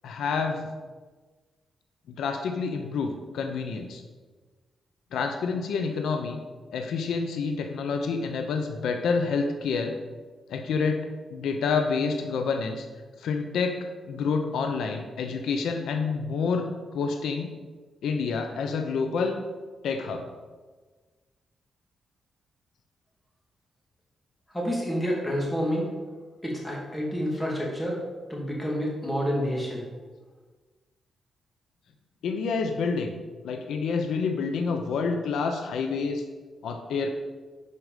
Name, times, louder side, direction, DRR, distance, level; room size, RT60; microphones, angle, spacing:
voice 1, 0.0-0.7 2.2-4.0 5.1-6.4 6.7-10.0 10.5-12.8 13.2-16.7 16.9-17.5 18.0-19.4 19.8-20.3 32.2-33.1 33.4-36.2 36.6-37.1, left 5 dB, 90° left, 5 dB, 0.8 m, -28 dB
voice 2, 24.5-25.9 26.4-28.0 28.3-29.8, equal, 10° left, -3 dB, 2.5 m, -28 dB
11.0 x 5.1 x 5.1 m, 1.4 s
cardioid pair, 110°, 0 cm